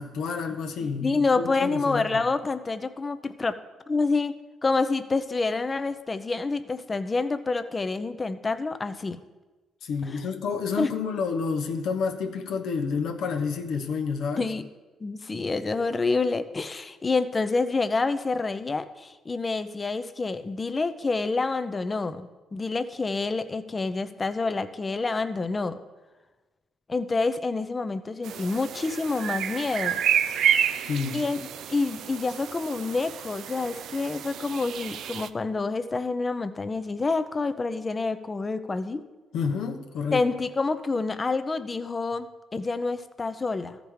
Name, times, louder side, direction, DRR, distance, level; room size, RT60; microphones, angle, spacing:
voice 1, 0.0-2.2 9.8-14.5 30.8-31.2 39.3-40.2, left 5 dB, 70° left, 1.0 m, -29 dB
voice 2, 0.8-3.6 3.9-4.3 4.6-9.2 10.8-10.9 14.4-14.7 15.0-25.8 26.9-30.0 31.1-31.4 31.7-39.0 40.1-43.8, left 3 dB, 30° left, 0.7 m, -28 dB
sound 1, 28.2-35.3, right 9 dB, 70° right, 0.4 m, -29 dB
14.0 x 5.2 x 4.8 m
supercardioid pair, 70°, 0 cm